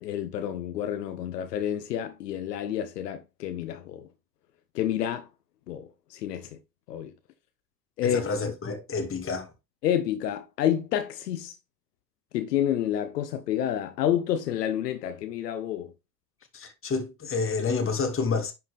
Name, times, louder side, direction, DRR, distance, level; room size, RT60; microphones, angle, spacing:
voice 1, 0.0-4.1 4.7-5.3 5.7-6.5 6.9-7.1 8.0-8.2 9.8-11.6 12.3-15.9, left 10 dB, 75° left, 0.9 m, -29 dB
voice 2, 8.0-9.5 16.5-18.5, left 4 dB, 25° left, 2.2 m, -29 dB
10.0 x 4.7 x 3.4 m
figure-of-eight pair, 70°, 49 cm